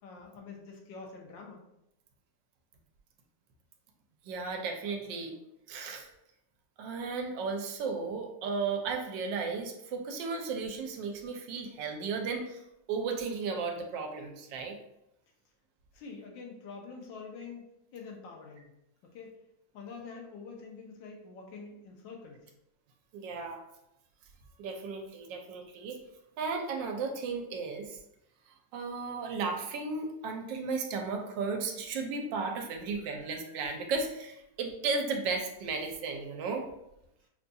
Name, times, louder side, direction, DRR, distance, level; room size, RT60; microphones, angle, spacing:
voice 1, 0.0-1.6 15.9-18.7 19.0-19.3 19.7-22.5, left 4 dB, 90° left, 1 dB, 1.5 m, -46 dB
voice 2, 4.2-5.3 5.7-6.1 6.8-12.6 12.9-14.8 23.1-23.6 24.6-26.0 26.4-28.0 28.7-36.7, right 4 dB, 85° right, 3 dB, 1.3 m, -34 dB
5.4 x 2.3 x 2.6 m, 0.84 s
omnidirectional pair, 1.9 m